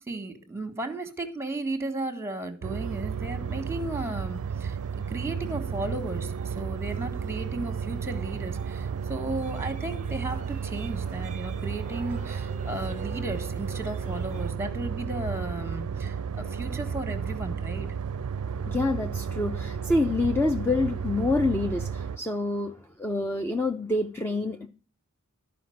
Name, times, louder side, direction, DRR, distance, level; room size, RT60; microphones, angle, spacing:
voice 1, 0.1-4.8 5.1-17.9, right 2 dB, 10° right, 1.5 m, -35 dB
sound 1, 2.6-22.2, right 6 dB, 85° right, 0.4 m, -33 dB
sound 2, 2.8-14.5, right 4 dB, 35° right, 0.7 m, -48 dB
voice 2, 12.8-13.2 16.4-16.8 18.4-24.7, left 2 dB, 10° left, 0.6 m, -28 dB
13.0 x 5.1 x 7.8 m
head